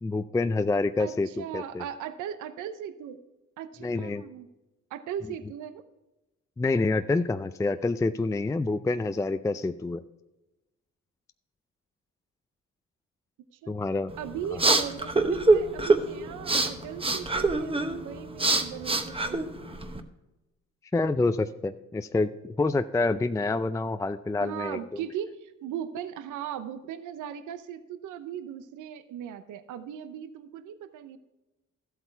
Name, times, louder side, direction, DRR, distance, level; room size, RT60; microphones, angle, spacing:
voice 1, 0.0-1.8 3.8-4.2 6.6-10.0 13.7-14.1 20.9-24.8, left 3 dB, 10° left, 10 dB, 0.4 m, -27 dB
voice 2, 1.0-3.2 3.6-4.5 4.9-5.8 13.6-13.7 14.2-19.4 24.4-31.2, right 9 dB, 85° right, 12 dB, 0.8 m, -38 dB
sound 1, 14.1-20.0, right 3 dB, 20° right, 1.0 m, -25 dB
13.0 x 8.1 x 4.5 m, 1.0 s
cardioid pair, 90°, 30 cm